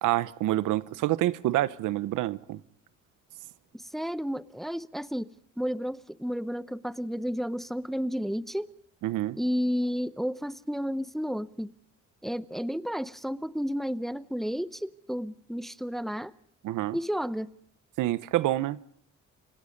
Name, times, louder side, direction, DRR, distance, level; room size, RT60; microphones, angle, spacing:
voice 1, 0.0-2.6 9.0-9.4 16.6-17.0 18.0-18.8, right 15 dB, 85° right, 0.9 m, -27 dB
voice 2, 3.7-5.3 5.6-8.7 9.4-11.7 12.2-16.3 16.9-17.5, equal, ahead, 0.7 m, -32 dB
29.5 x 17.5 x 5.3 m
cardioid pair, 90°, 30 cm